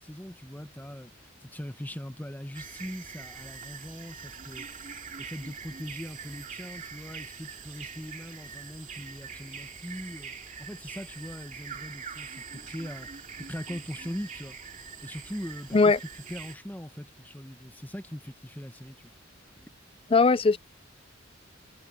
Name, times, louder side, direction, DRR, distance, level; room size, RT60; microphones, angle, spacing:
voice 1, 0.0-4.9 5.2-10.3 10.6-14.6 15.0-19.2 19.6-19.7, equal, 10° left, 1.2 m, -41 dB
sound 1, 2.5-16.6, right 6 dB, 40° right, 2.5 m, -43 dB
voice 2, 20.1-20.6, left 4 dB, 30° left, 0.4 m, -19 dB
head